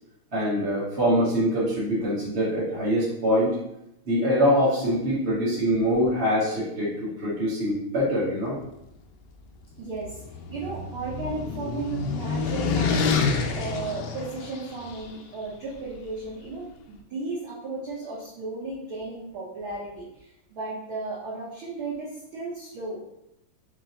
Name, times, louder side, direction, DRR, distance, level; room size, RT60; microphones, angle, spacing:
voice 1, 0.3-3.5 4.1-8.6, equal, 40° right, -8 dB, 0.9 m, -24 dB
sound 1, 9.8-15.0, left 5 dB, 85° left, 1.6 m, -28 dB
voice 2, 9.8-10.2 10.5-13.2 13.5-23.0, right 3 dB, 70° right, -6 dB, 1.2 m, -35 dB
4.5 x 3.0 x 3.9 m, 0.83 s
omnidirectional pair, 3.6 m